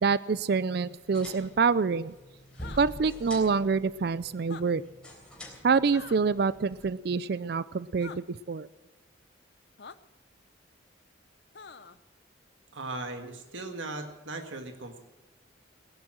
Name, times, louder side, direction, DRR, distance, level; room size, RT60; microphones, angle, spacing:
voice 1, 0.0-2.1 2.8-4.8 5.6-8.7, right 5 dB, 55° right, 18 dB, 0.4 m, -26 dB
sound 1, 0.9-6.8, equal, 5° left, 3.7 m, -47 dB
sound 2, 2.5-2.8 4.4-4.6 5.9-6.2 8.0-8.2 9.8-10.0 11.5-12.0, left 5 dB, 55° left, 0.7 m, -45 dB
voice 2, 12.7-15.0, right 2 dB, 80° right, 6 dB, 1.7 m, -38 dB
19.0 x 11.0 x 6.2 m, 1.1 s
head